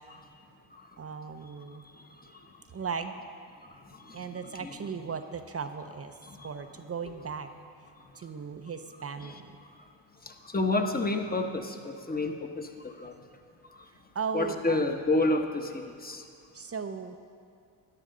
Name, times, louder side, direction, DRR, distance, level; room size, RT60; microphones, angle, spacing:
voice 1, 1.0-1.9 2.7-3.3 4.1-6.1 6.4-7.5 8.1-9.6 14.1-14.9 16.5-17.2, right 5 dB, 30° right, 8 dB, 0.7 m, -37 dB
voice 2, 2.0-2.4 3.9-4.7 6.2-6.5 9.2-9.3 10.3-13.1 14.3-16.2, left 2 dB, 20° left, 5 dB, 1.1 m, -30 dB
13.5 x 10.0 x 3.9 m, 2.3 s
supercardioid pair, 65°, 49 cm